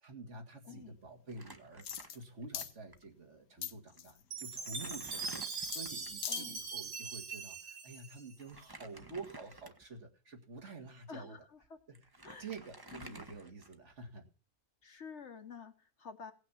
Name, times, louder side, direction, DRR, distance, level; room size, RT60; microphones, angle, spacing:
voice 1, 0.0-11.4 11.9-12.0 12.4-14.3, right 3 dB, 50° right, 2 dB, 2.2 m, -49 dB
voice 2, 0.6-1.0 6.3-6.6 11.1-11.8 12.2-12.5 12.9-13.2 14.8-16.3, left 6 dB, 50° left, 8 dB, 1.3 m, -50 dB
Crumpling crinkling, 1.3-2.6 2.9-3.0 3.9-4.0 4.4-6.2 8.4-10.0 10.6-10.7 11.6-11.7 11.9-14.0, right 2 dB, 20° right, 0.9 m, -52 dB
sound 1, 1.8-2.2 2.5-2.7 3.6-4.2 5.7-5.8 6.1-6.5 6.9-7.0, left 9 dB, 75° left, 1.3 m, -40 dB
Chime, 4.3-8.6, right 4 dB, 90° right, 2.3 m, -41 dB
17.0 x 6.2 x 7.3 m, 0.37 s
omnidirectional pair, 1.6 m